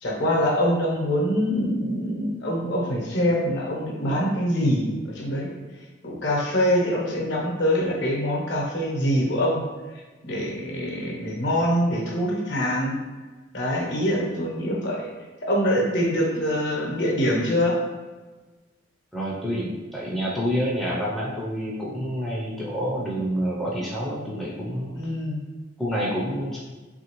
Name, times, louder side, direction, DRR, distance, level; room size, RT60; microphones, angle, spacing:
voice 1, 0.0-5.5 6.0-9.6 10.2-13.0 13.5-15.1 15.4-17.8 24.9-25.4, equal, 60° left, -2 dB, 0.7 m, -24 dB
voice 2, 19.1-25.0 25.8-26.6, equal, ahead, -6 dB, 0.4 m, -28 dB
3.2 x 2.5 x 2.9 m, 1.3 s
head